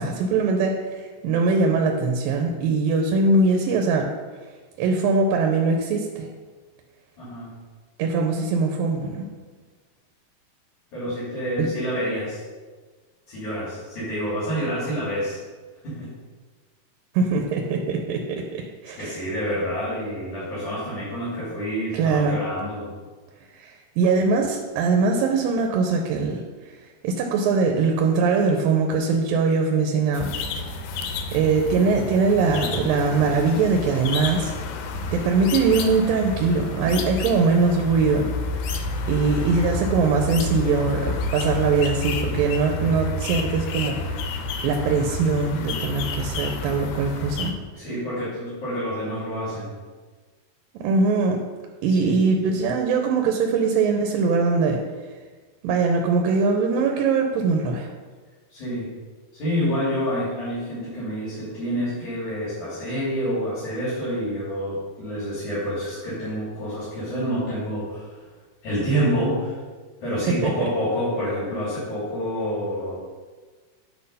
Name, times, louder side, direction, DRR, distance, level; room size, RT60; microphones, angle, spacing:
voice 1, 0.0-4.1 4.8-6.3 8.0-9.3 11.6-11.7 17.1-19.2 21.9-22.4 23.5-26.4 27.0-30.3 31.3-34.5 35.1-38.3 39.1-47.5 50.8-51.4 51.8-54.8 55.6-57.9 70.4-70.5, right 4 dB, 85° right, 3 dB, 2.5 m, -22 dB
voice 2, 7.2-7.5 10.9-12.4 13.3-15.4 15.8-16.1 19.0-22.9 47.8-49.7 51.9-52.2 58.5-58.9 59.3-68.2 68.6-69.6 70.0-73.0, equal, 60° left, -11 dB, 4.3 m, -28 dB
sound 1, 30.1-47.5, left 3 dB, 85° left, 2.5 m, -30 dB
10.0 x 4.0 x 5.5 m, 1.4 s
omnidirectional pair, 4.0 m